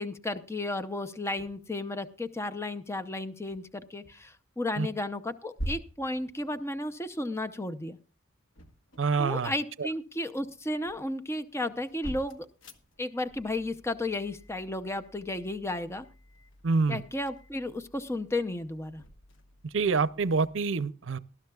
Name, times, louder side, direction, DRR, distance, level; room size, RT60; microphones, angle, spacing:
voice 1, 0.0-8.0 9.2-12.5 13.0-16.0 16.9-19.0, left 2 dB, 15° left, 0.6 m, -33 dB
sound 1, 1.0-1.1 1.4-1.7 3.5-4.4 4.8-5.1 5.5-7.5 8.3-9.6 10.0-20.6, right 1 dB, 80° left, 1.3 m, -47 dB
voice 2, 9.0-9.5 9.8-9.9 16.6-17.0 19.7-21.2, right 4 dB, 75° right, 0.6 m, -26 dB
19.5 x 12.5 x 2.3 m
head